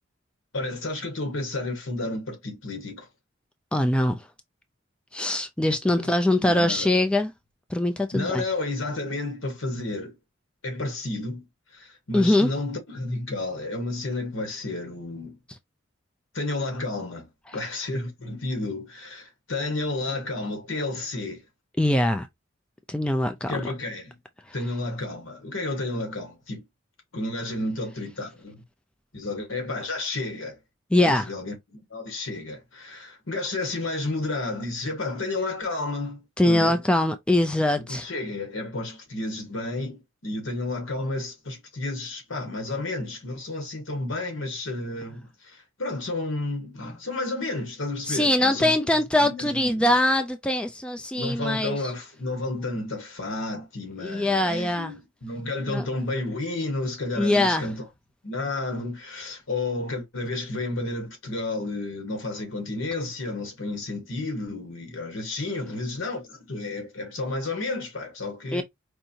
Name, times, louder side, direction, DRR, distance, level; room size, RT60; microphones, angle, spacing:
voice 1, 0.5-3.1 5.9-6.1 6.4-7.1 8.1-10.2 10.6-11.4 11.7-15.4 16.3-17.3 17.5-21.4 23.5-24.2 24.5-26.6 27.1-28.6 29.1-30.6 31.0-36.8 37.9-48.8 49.2-49.9 51.1-57.8 58.2-68.6, left 2 dB, 75° left, 1.5 m, -31 dB
voice 2, 3.7-4.3 5.1-7.3 7.7-8.4 12.1-12.5 21.8-22.3 22.9-23.5 30.9-31.3 36.4-38.1 48.0-51.9 54.0-54.9 55.7-55.8 57.2-57.7 68.5-68.6, left 1 dB, 5° left, 0.3 m, -23 dB
4.6 x 2.6 x 2.7 m
head